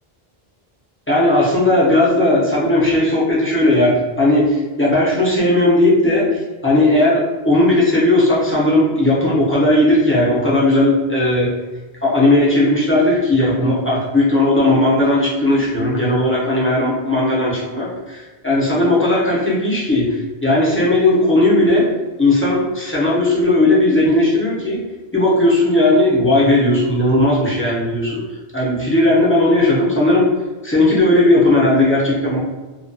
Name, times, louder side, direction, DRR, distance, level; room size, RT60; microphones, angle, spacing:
voice 1, 1.1-11.5 12.0-21.9 22.2-24.8 25.1-28.2 28.5-30.3 30.6-32.4, left 1 dB, 20° left, -7 dB, 0.4 m, -16 dB
2.3 x 2.2 x 2.5 m, 1.2 s
omnidirectional pair, 1.0 m